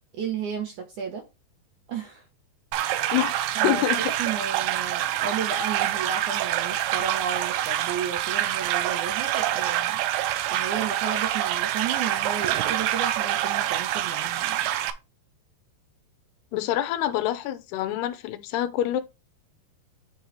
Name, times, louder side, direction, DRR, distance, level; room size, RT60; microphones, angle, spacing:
voice 1, 0.1-1.2 1.9-2.2 3.6-3.8 4.2-10.0 10.5-14.7, right 7 dB, 70° right, 1.9 m, -33 dB
sound 1, 2.7-14.9, right 13 dB, 90° right, 2.6 m, -26 dB
voice 2, 3.6-4.0 16.5-19.0, left 12 dB, 85° left, 2.8 m, -26 dB
9.8 x 4.0 x 3.2 m
omnidirectional pair, 4.7 m